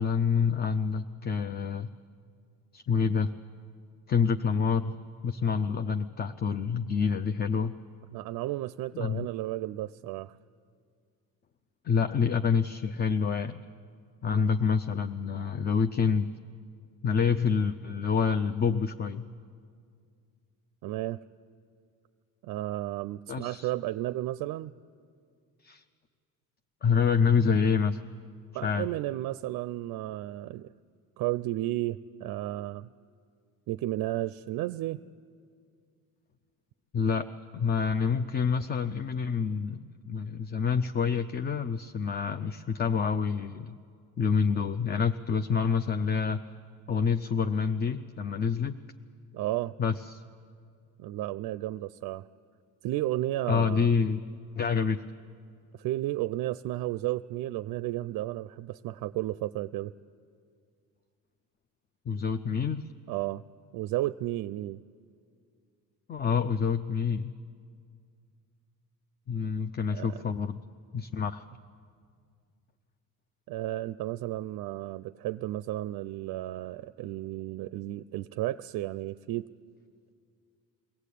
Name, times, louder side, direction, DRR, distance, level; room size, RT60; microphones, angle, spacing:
voice 1, 0.0-1.9 2.7-3.3 4.1-4.9 5.2-7.7 8.9-9.3 11.8-13.6 14.2-16.3 17.0-19.2 23.3-23.7 25.6-25.8 26.8-28.0 28.6-28.9 36.9-37.3 37.5-43.7 44.2-46.4 46.9-48.8 49.8-50.2 53.5-54.2 54.6-55.0 62.1-62.8 66.1-67.3 69.3-70.6 70.9-71.5, left 6 dB, 25° left, 10 dB, 0.5 m, -27 dB
voice 2, 8.1-10.4 20.8-21.2 22.4-24.7 28.5-30.7 31.2-32.9 33.7-35.0 49.3-49.7 51.0-52.3 52.8-53.9 55.7-59.9 63.1-63.4 63.7-64.8 69.9-70.2 73.5-79.5, right 15 dB, 65° right, 16 dB, 0.5 m, -33 dB
22.5 x 16.5 x 8.4 m, 2.2 s
cardioid pair, 105°, 37 cm